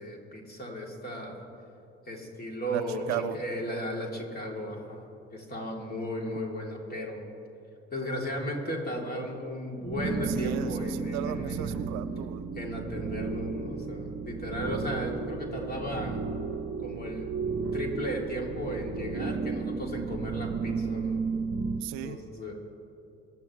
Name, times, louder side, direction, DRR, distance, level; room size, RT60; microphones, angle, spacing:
voice 1, 0.0-1.4 2.0-7.2 7.9-11.7 12.5-16.2 16.8-17.4 17.7-21.5 22.0-22.5, equal, 30° left, 0 dB, 3.3 m, -35 dB
voice 2, 2.7-3.4 10.3-12.5 21.8-22.2, right 13 dB, 65° right, 13 dB, 0.5 m, -35 dB
sound 1, 9.8-21.8, right 4 dB, 45° right, 1.0 m, -33 dB
23.5 x 12.0 x 3.3 m, 2.7 s
figure-of-eight pair, 45°, 30 cm